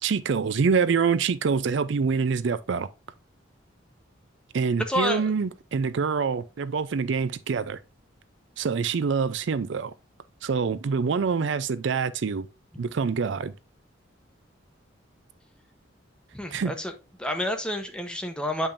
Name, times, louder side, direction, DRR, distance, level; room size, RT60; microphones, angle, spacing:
voice 1, 0.0-2.9 4.5-7.8 8.6-9.9 10.4-12.5 12.8-13.5 16.5-16.7, right 5 dB, 65° right, 0.4 m, -25 dB
voice 2, 4.9-5.3 16.3-16.9 17.2-18.7, left 1 dB, 5° left, 0.8 m, -29 dB
8.5 x 5.4 x 2.5 m
head